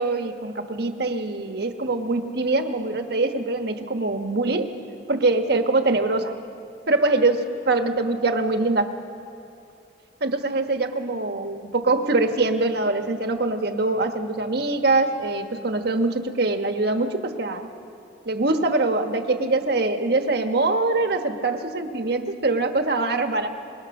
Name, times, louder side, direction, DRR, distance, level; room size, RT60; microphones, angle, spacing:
voice 1, 0.0-4.7 5.1-6.3 6.9-8.9 10.2-17.7 18.2-23.5, right 2 dB, 60° right, 6 dB, 1.3 m, -23 dB
23.5 x 21.5 x 6.6 m, 2.7 s
head